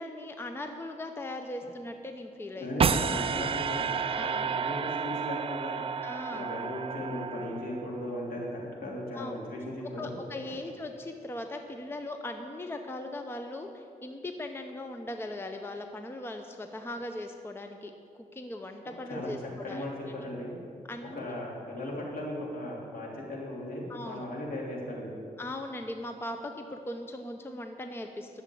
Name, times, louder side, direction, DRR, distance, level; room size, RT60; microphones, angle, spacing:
voice 1, 0.0-2.7 4.1-4.5 6.0-6.5 9.1-9.4 9.8-17.9 18.3-20.3 20.9-21.4 23.9-24.2 25.4-28.4, left 1 dB, 15° left, 5 dB, 0.6 m, -39 dB
voice 2, 2.6-5.8 6.3-10.1 10.4-10.5 19.1-19.3 19.6-20.6 21.1-25.1, left 1 dB, 70° left, -3 dB, 3.0 m, -37 dB
sound 1, 2.8-8.0, right 6 dB, 40° right, 0.4 m, -31 dB
11.5 x 7.2 x 8.5 m, 2.4 s
wide cardioid pair, 140°, 15 cm